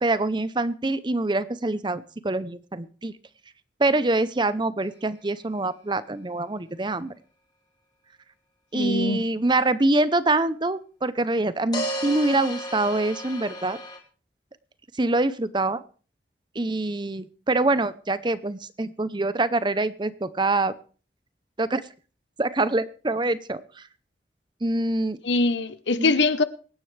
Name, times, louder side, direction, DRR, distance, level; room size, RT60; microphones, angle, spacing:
voice 1, 0.0-3.1 3.8-7.1 8.7-13.8 15.0-15.8 16.5-20.7 21.6-21.8 22.4-23.6 24.6-25.2 26.0-26.1, right 2 dB, 25° right, 0.7 m, -25 dB
sound 1, 4.8-4.9 11.7-14.0, right 1 dB, 25° left, 2.6 m, -32 dB
voice 2, 8.7-9.2 25.2-26.4, left 3 dB, 85° left, 1.0 m, -23 dB
24.0 x 9.8 x 3.4 m
head